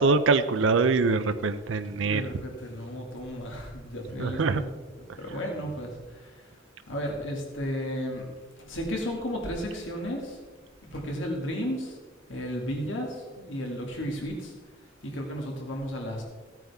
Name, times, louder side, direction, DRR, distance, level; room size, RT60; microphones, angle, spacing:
voice 1, 0.0-2.3 4.2-4.6, right 4 dB, 80° right, 9 dB, 0.5 m, -23 dB
voice 2, 1.9-4.8 5.2-6.6 6.9-8.2 8.6-10.4 10.8-12.0 12.3-14.5 15.0-16.2, equal, 80° left, 0 dB, 2.1 m, -34 dB
16.0 x 9.1 x 3.5 m, 1.4 s
head